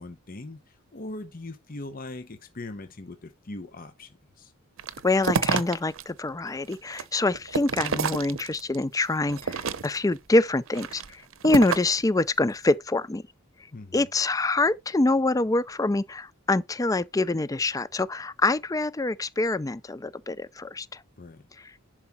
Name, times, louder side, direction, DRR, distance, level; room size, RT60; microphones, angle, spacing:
voice 1, 0.0-4.5 13.7-14.1 21.2-21.5, left 2 dB, 40° left, 0.8 m, -40 dB
sound 1, 4.8-6.0 6.5-8.8 9.3-10.1 10.7-12.0, right 5 dB, 70° right, 0.8 m, -29 dB
voice 2, 5.0-13.2 13.9-21.0, left 2 dB, 15° left, 0.4 m, -25 dB
11.0 x 4.7 x 4.2 m
head